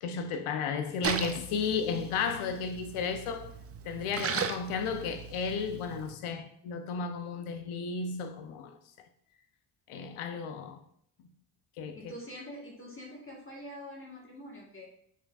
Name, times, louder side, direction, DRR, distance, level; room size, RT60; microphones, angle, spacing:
voice 1, 0.0-3.5 3.8-8.8 9.9-10.8 11.8-12.1, left 5 dB, 85° left, 0.7 m, -33 dB
Splash splatter, 1.0-6.1, right 6 dB, 30° right, 0.5 m, -37 dB
voice 2, 11.9-14.9, equal, 25° left, 1.3 m, -45 dB
5.1 x 3.8 x 2.4 m
supercardioid pair, 50°, 49 cm